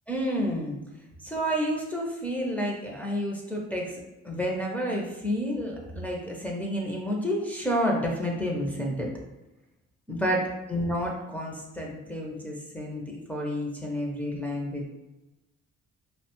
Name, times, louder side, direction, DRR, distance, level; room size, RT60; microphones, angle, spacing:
voice 1, 0.1-0.8 1.2-4.0 4.2-9.1 10.1-14.9, equal, 5° left, -3 dB, 0.5 m, -30 dB
2.7 x 2.1 x 2.9 m, 0.99 s
cardioid pair, 90°, 30 cm